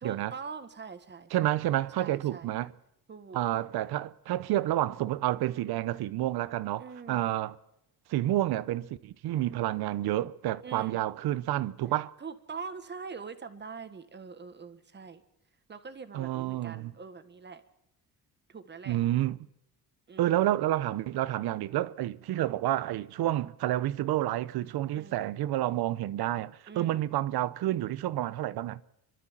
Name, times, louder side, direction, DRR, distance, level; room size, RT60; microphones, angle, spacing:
voice 1, 0.0-1.5 2.0-2.5 3.1-3.4 6.8-7.3 10.6-11.0 12.2-15.2 15.7-17.6 18.5-19.0 20.1-20.4 24.9-25.3 26.7-27.1, right 5 dB, 30° right, 1.5 m, -43 dB
voice 2, 1.3-2.7 3.3-7.5 8.1-12.1 16.1-16.9 18.9-19.4 20.2-28.8, right 14 dB, 80° right, 0.9 m, -29 dB
29.5 x 12.5 x 7.3 m
cardioid pair, 145°, 37 cm